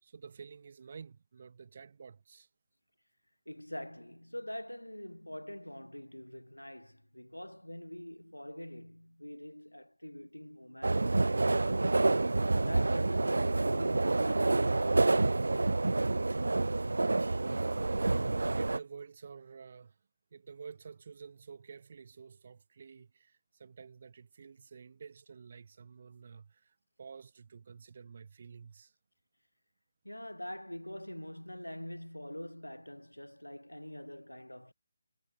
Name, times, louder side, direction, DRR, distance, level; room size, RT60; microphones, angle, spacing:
voice 1, 0.0-2.5 18.5-20.0 20.3-28.9, right 6 dB, 40° right, 2.5 m, -50 dB
voice 2, 3.5-15.4 30.0-34.7, left 1 dB, 85° left, 1.0 m, -45 dB
sound 1, 10.8-18.8, right 2 dB, 65° right, 0.4 m, -28 dB
figure-of-eight pair, 150°, 0 cm